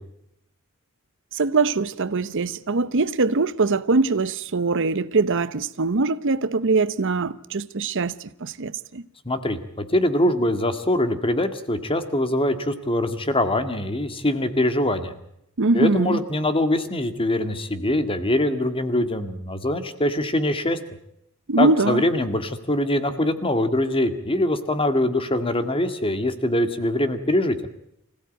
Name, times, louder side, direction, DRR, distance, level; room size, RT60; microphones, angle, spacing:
voice 1, 1.3-9.0 15.6-16.2 21.5-22.1, right 3 dB, 60° right, 0.8 m, -22 dB
voice 2, 9.3-15.1 15.7-20.8 21.6-27.6, left 1 dB, 25° left, 1.9 m, -23 dB
26.0 x 16.0 x 9.2 m
head